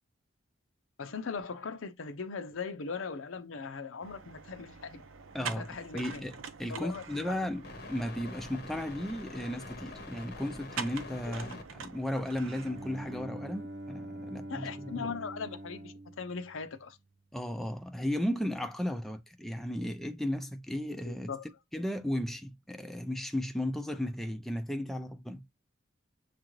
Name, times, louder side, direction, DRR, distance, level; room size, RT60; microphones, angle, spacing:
voice 1, 1.0-5.0 5.4-6.2 6.7-7.5 11.3-11.6 14.5-17.0 21.1-21.5, left 5 dB, 80° left, 0.6 m, -40 dB
sound 1, 4.0-13.2, right 5 dB, 90° right, 0.7 m, -45 dB
voice 2, 5.3-5.7 5.9-15.1 17.3-21.3 21.7-25.4, left 1 dB, ahead, 0.4 m, -35 dB
sound 2, 6.6-11.6, left 2 dB, 50° left, 0.8 m, -47 dB
Bowed string instrument, 12.4-17.2, right 1 dB, 55° right, 0.7 m, -45 dB
6.6 x 2.5 x 3.0 m
head